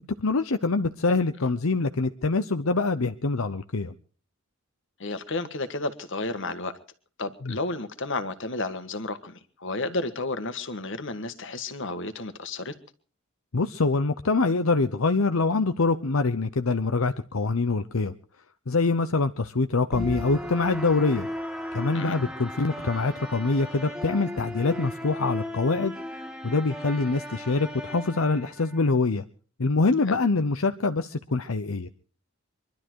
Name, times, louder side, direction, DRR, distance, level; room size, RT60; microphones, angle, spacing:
voice 1, 0.2-3.9 7.4-7.5 13.5-18.1 18.7-21.3 21.7-25.9 26.4-29.2 29.6-31.9, left 3 dB, 85° left, 0.8 m, -25 dB
voice 2, 5.0-6.7 7.2-12.7 21.9-22.2 30.1-30.2, left 2 dB, 60° left, 1.7 m, -32 dB
sound 1, 19.9-28.9, left 1 dB, 5° right, 1.5 m, -36 dB
23.5 x 12.5 x 4.7 m
head